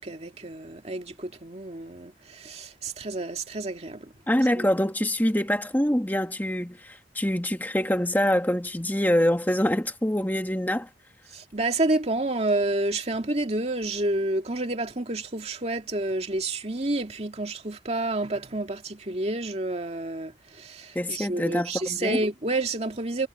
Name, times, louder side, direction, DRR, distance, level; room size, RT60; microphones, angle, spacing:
voice 1, 0.0-4.1 4.5-4.7 11.3-23.3, right 2 dB, 35° right, 2.3 m, -29 dB
voice 2, 4.3-10.9 20.9-22.2, equal, 10° left, 1.7 m, -25 dB
head